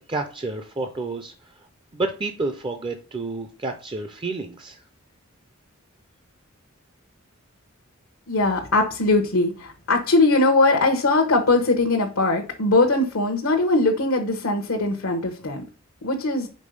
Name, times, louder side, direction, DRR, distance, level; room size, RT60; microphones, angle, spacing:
voice 1, 0.1-1.7 1.9-4.8, right 3 dB, 25° right, 7 dB, 0.5 m, -30 dB
voice 2, 8.3-15.6 16.0-16.5, left 2 dB, 85° left, 2 dB, 1.0 m, -20 dB
5.3 x 3.9 x 5.3 m, 0.36 s
head